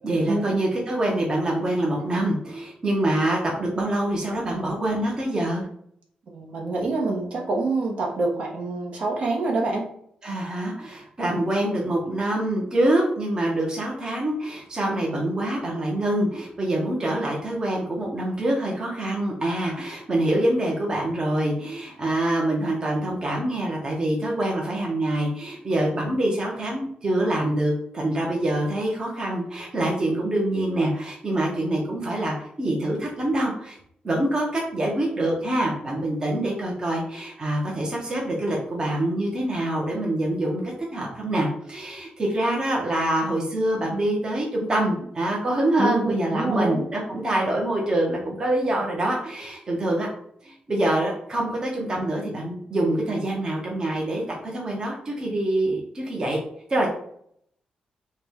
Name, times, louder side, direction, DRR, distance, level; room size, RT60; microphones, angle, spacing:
voice 1, 0.0-5.6 10.2-33.8 34.0-50.1 50.4-54.2 54.5-56.4 56.7-56.9, right 1 dB, 30° right, -2 dB, 1.0 m, -25 dB
voice 2, 6.3-9.8 45.8-46.8, right 3 dB, 50° right, -1 dB, 1.0 m, -26 dB
4.6 x 2.3 x 3.5 m, 0.66 s
wide cardioid pair, 140°, 3 cm